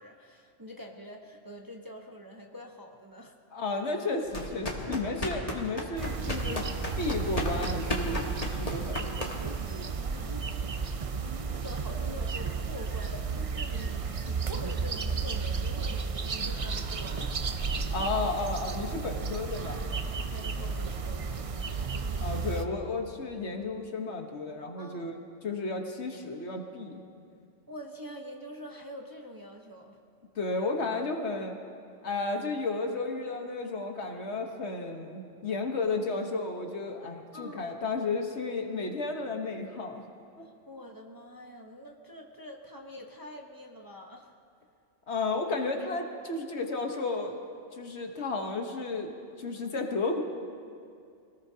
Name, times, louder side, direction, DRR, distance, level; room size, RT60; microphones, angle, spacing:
voice 1, 0.0-3.4 4.8-5.5 10.1-11.2 11.5-17.3 17.8-18.1 19.2-19.4 20.3-21.9 24.8-25.1 27.7-30.0 37.3-37.8 40.4-44.3, equal, 20° right, 1 dB, 1.0 m, -46 dB
voice 2, 3.5-6.7 7.0-9.3 17.9-19.9 22.2-27.0 30.3-31.6 32.0-40.0 40.4-40.5 45.1-47.3 47.7-49.1 49.4-50.2, left 3 dB, 60° left, 3 dB, 1.5 m, -33 dB
sound 1, 4.3-9.6, left 1 dB, 30° left, 1.7 m, -34 dB
sound 2, 6.0-22.6, right 5 dB, 40° right, 0.5 m, -33 dB
25.0 x 18.5 x 2.8 m, 2.4 s
omnidirectional pair, 1.3 m